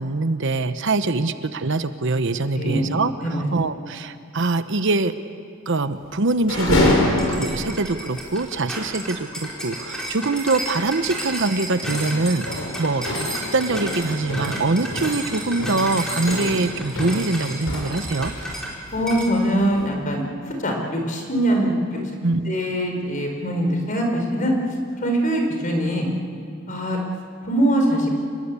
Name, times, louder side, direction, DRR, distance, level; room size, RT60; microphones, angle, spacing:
voice 1, 0.0-5.1 5.7-7.0 7.3-12.5 12.8-13.1 13.5-18.3 22.0-22.6, right 3 dB, 60° right, 11 dB, 0.9 m, -23 dB
voice 2, 2.5-2.9 3.2-3.4 18.9-20.2 20.6-22.0 22.5-24.5 25.0-26.1 26.7-27.0 27.4-28.2, right 1 dB, 40° left, 2 dB, 4.4 m, -22 dB
sound 1, 6.3-7.8 8.2-8.3 8.5-8.7 10.4-10.6 11.0-11.3 11.8-18.6 18.9-19.9, left 1 dB, 75° left, 6.7 m, -26 dB
sound 2, 7.2-18.7 19.1-19.3, right 1 dB, 5° left, 4.7 m, -32 dB
27.0 x 21.0 x 8.4 m, 2.3 s
head